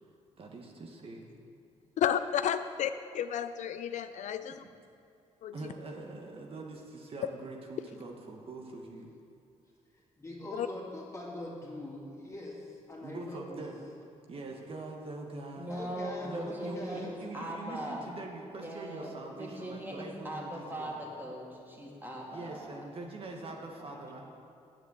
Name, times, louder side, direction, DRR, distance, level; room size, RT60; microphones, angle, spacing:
voice 1, 0.4-1.3 5.5-9.1 13.0-13.8 14.3-15.7 16.2-21.0 22.3-24.2, right 3 dB, 50° right, 1.3 m, -43 dB
voice 2, 2.0-4.6 5.4-5.5 10.6-10.7, left 9 dB, 70° left, 0.4 m, -31 dB
voice 3, 9.9-13.7 15.7-17.1 23.9-24.2, left 1 dB, 25° left, 2.5 m, -43 dB
voice 4, 15.6-18.0 18.6-22.8 23.8-24.0, equal, 15° right, 2.2 m, -40 dB
8.0 x 7.5 x 8.0 m
cardioid pair, 105°, 13 cm